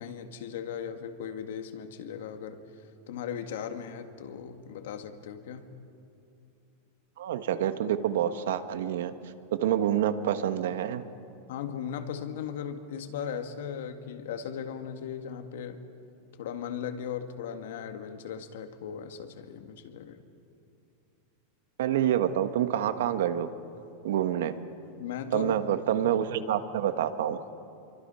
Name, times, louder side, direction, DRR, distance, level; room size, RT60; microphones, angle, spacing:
voice 1, 0.0-5.7 11.5-15.8 16.3-20.2 25.0-25.6 25.9-26.0, left 8 dB, 70° left, 7 dB, 1.9 m, -38 dB
voice 2, 7.2-9.1 9.6-11.0 21.8-23.5 24.0-24.6 25.3-27.4, right 10 dB, 75° right, 10 dB, 1.4 m, -27 dB
28.0 x 24.0 x 5.7 m, 2.7 s
supercardioid pair, 170°, 0 cm